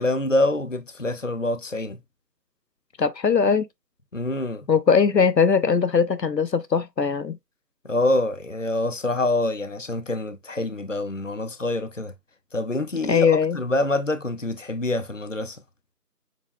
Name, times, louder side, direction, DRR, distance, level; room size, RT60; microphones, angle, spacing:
voice 1, 0.0-2.0 4.1-4.7 7.8-12.1 12.5-15.6, left 2 dB, 50° left, 0.5 m, -26 dB
voice 2, 3.0-3.7 4.7-7.4 13.1-13.6, left 6 dB, 85° left, 0.9 m, -20 dB
7.3 x 3.0 x 2.2 m
figure-of-eight pair, 180°, 49 cm